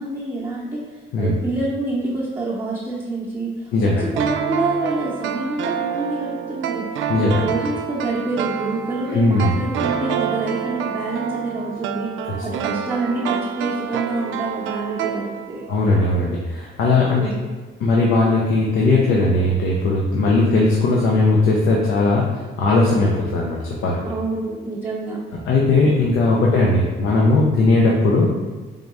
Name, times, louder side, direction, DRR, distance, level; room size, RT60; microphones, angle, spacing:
voice 1, 0.0-3.7 4.0-12.1 12.4-15.6 17.1-17.5 24.0-25.2, right 2 dB, 15° right, -6 dB, 0.9 m, -27 dB
voice 2, 3.7-4.1 7.1-7.4 9.1-9.5 15.7-17.2 17.8-24.0 25.5-28.3, left 2 dB, 80° left, -3 dB, 0.7 m, -18 dB
sound 1, 4.2-15.8 16.1-16.2, right 8 dB, 80° right, 0.4 m, -27 dB
3.8 x 3.5 x 4.1 m, 1.4 s
cardioid pair, 90°, 20 cm